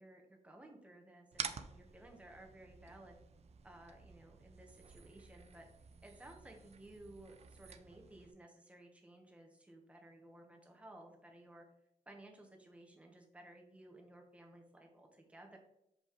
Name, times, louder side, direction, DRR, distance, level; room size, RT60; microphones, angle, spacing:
voice 1, 0.0-3.2 3.6-5.7 6.0-11.7 12.1-15.6, right 1 dB, 10° right, 1 dB, 1.0 m, -57 dB
sound 1, 1.3-8.3, right 6 dB, 50° right, 0.5 m, -50 dB
6.6 x 5.2 x 3.0 m, 0.81 s
wide cardioid pair, 160°, 14 cm